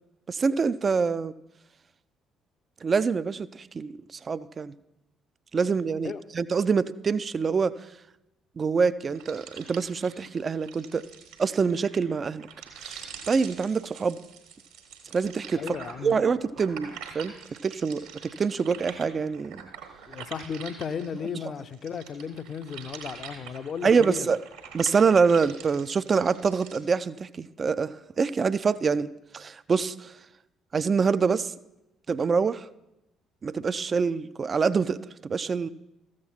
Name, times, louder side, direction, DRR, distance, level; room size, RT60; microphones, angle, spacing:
voice 1, 0.3-1.3 2.8-4.7 5.5-7.7 8.6-11.0 11.4-12.5 12.8-14.2 15.1-15.6 16.0-17.3 17.6-19.7 23.8-24.4 24.7-29.1 29.3-30.1 30.7-31.5 32.1-32.6 33.4-35.7, right 5 dB, 35° right, 0.3 m, -25 dB
sound 1, 9.1-21.3 21.7-26.8, right 7 dB, 70° right, 1.4 m, -45 dB
voice 2, 15.5-16.2 20.1-24.3, left 6 dB, 45° left, 0.5 m, -35 dB
14.0 x 7.4 x 4.3 m
figure-of-eight pair, 45°, 0 cm